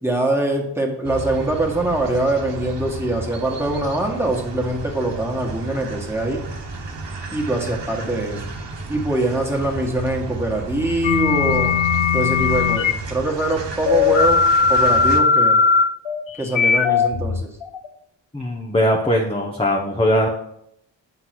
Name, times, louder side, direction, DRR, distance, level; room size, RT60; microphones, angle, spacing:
voice 1, 0.0-6.4 7.3-8.4 8.9-11.7 12.1-14.4 14.7-15.6 16.4-17.6, right 2 dB, 5° right, 0 dB, 1.7 m, -23 dB
sound 1, 1.0-15.2, right 2 dB, 65° right, 1.3 m, -32 dB
sound 2, 11.0-12.9 13.9-17.9, left 5 dB, 85° left, 0.7 m, -18 dB
voice 2, 18.3-20.3, equal, 10° left, -1 dB, 0.9 m, -20 dB
8.1 x 4.0 x 6.0 m, 0.74 s
wide cardioid pair, 80°, 46 cm